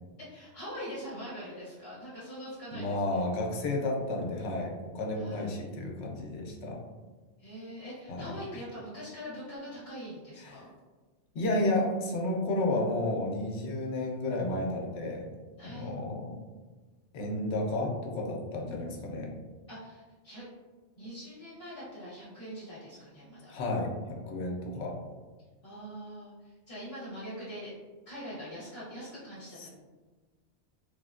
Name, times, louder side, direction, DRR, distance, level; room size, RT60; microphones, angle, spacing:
voice 1, 0.2-3.2 5.1-5.6 7.4-10.7 15.6-16.0 19.7-20.4 21.0-23.5 25.6-27.7 28.1-29.7, equal, 55° left, -11 dB, 1.0 m, -43 dB
voice 2, 2.7-6.8 8.1-8.3 10.4-10.7 11.3-15.3 15.6-16.3 17.1-19.3 23.5-25.0 29.6-29.7, left 2 dB, 80° left, 0 dB, 0.9 m, -32 dB
3.3 x 2.1 x 2.4 m, 1.3 s
omnidirectional pair, 1.2 m